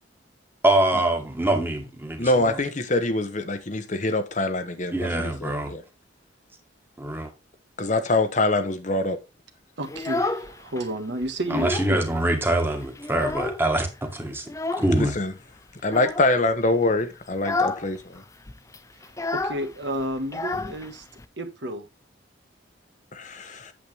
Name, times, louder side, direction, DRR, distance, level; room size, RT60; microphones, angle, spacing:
voice 1, 0.6-2.6 4.9-5.7 7.0-7.3 11.5-14.5 14.8-15.1, right 1 dB, 10° right, 1.8 m, -24 dB
voice 2, 2.2-5.8 7.8-9.2 15.0-15.3 15.8-18.2 23.1-23.7, left 2 dB, 40° left, 1.0 m, -24 dB
Child speech kid speaking, 9.8-10.9 11.2-12.0 12.3-12.4 12.7-13.8 14.5-15.0 15.8-16.3 16.7-16.9 17.3-17.9 18.1-18.2 18.5-21.3, left 3 dB, 15° left, 0.5 m, -30 dB
voice 3, 9.8-12.0 19.3-21.1 21.4-21.9, right 1 dB, 70° right, 1.6 m, -31 dB
8.5 x 7.7 x 3.5 m
head